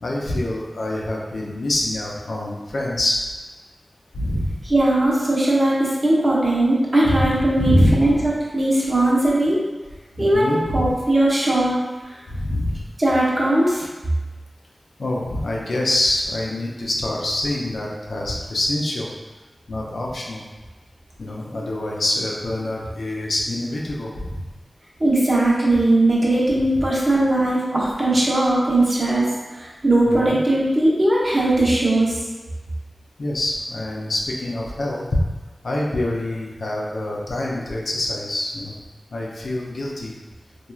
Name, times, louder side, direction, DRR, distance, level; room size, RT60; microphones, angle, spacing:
voice 1, 0.0-3.2 4.1-4.5 7.0-7.3 7.6-8.0 10.2-10.9 12.3-12.8 15.0-19.1 19.7-20.4 21.2-24.4 30.1-30.3 33.2-35.0 35.6-38.7 39.1-40.1, left 1 dB, 80° left, -2 dB, 0.4 m, -25 dB
voice 2, 4.7-8.2 8.5-9.6 10.2-11.8 13.0-13.8 25.0-29.2 29.5-32.1, right 1 dB, 45° right, -6 dB, 0.8 m, -19 dB
3.0 x 2.3 x 2.3 m, 1.2 s
cardioid pair, 45°, 0 cm